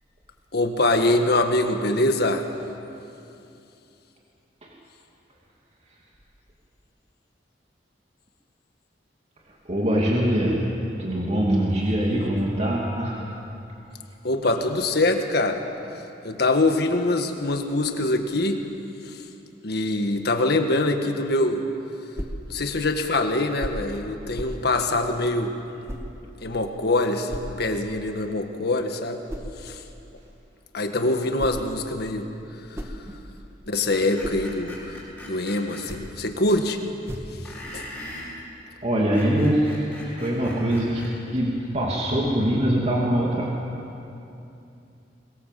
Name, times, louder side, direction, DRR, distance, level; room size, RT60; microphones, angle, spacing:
voice 1, 0.5-2.5 14.2-15.6 16.2-18.6 19.0-19.1 19.6-21.6 22.5-25.5 26.4-29.2 29.6-29.8 30.7-32.3 32.7-32.8 33.6-35.0 35.3-37.0 37.7-37.9, left 2 dB, 65° left, 5 dB, 1.7 m, -24 dB
voice 2, 9.4-10.7 11.0-13.3 38.8-41.0 41.3-43.5, equal, 40° right, -3 dB, 2.8 m, -23 dB
sound 1, 22.1-22.5 23.6-23.9 24.3-24.7 25.9-26.1 27.3-27.6 29.3-29.6 31.1-31.7 32.5-33.5 33.9-34.5 35.7-36.2 37.0-37.4, equal, 15° right, 2.2 m, -35 dB
Screech, 33.9-35.8 37.4-38.3 39.0-41.1, left 1 dB, 10° left, 7.7 m, -40 dB
23.5 x 21.5 x 7.6 m, 2.7 s
head